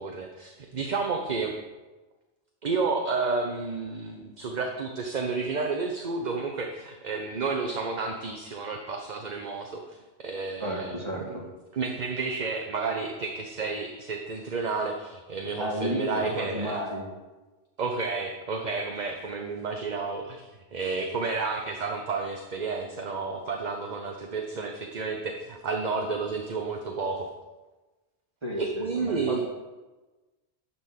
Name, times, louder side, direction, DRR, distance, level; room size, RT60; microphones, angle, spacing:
voice 1, 0.0-1.5 2.6-11.3 11.7-16.8 17.8-27.3 28.6-29.4, right 4 dB, 45° right, 3 dB, 0.9 m, -31 dB
voice 2, 10.6-11.4 15.6-17.1 28.4-29.4, equal, 25° right, -2 dB, 2.1 m, -32 dB
12.0 x 4.3 x 7.5 m, 1.2 s
omnidirectional pair, 1.1 m